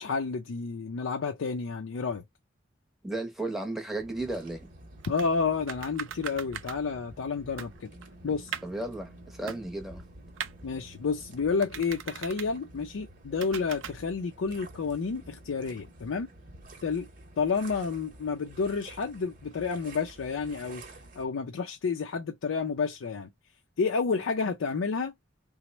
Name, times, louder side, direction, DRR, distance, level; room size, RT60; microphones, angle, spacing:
voice 1, 0.0-2.2 5.0-7.9 8.2-8.6 10.6-16.3 16.8-17.1 17.4-20.8 21.2-23.3 23.8-25.1, left 5 dB, 90° left, 0.4 m, -30 dB
voice 2, 3.0-4.7 8.6-10.0, right 2 dB, ahead, 0.7 m, -34 dB
sound 1, 4.0-21.3, right 1 dB, 45° right, 0.8 m, -50 dB
sound 2, 5.0-5.3 5.7-6.8 7.3-7.4 7.6-8.8 9.5-10.0 10.4-10.5 11.6-12.5 13.4-13.9, right 9 dB, 75° right, 0.4 m, -39 dB
3.0 x 2.1 x 4.1 m
head